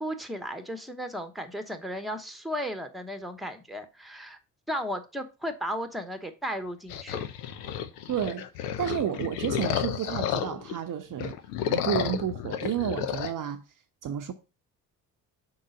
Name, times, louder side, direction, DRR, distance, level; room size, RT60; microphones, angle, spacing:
voice 1, 0.0-4.4 4.7-7.2, equal, ahead, 1.0 m, -35 dB
sound 1, 6.9-10.8 11.1-13.3, left 9 dB, 80° left, 0.7 m, -31 dB
voice 2, 8.1-8.4 8.8-11.3 11.7-13.6 14.0-14.3, right 9 dB, 45° right, 0.7 m, -31 dB
5.3 x 3.9 x 5.2 m
hypercardioid pair, 45°, 46 cm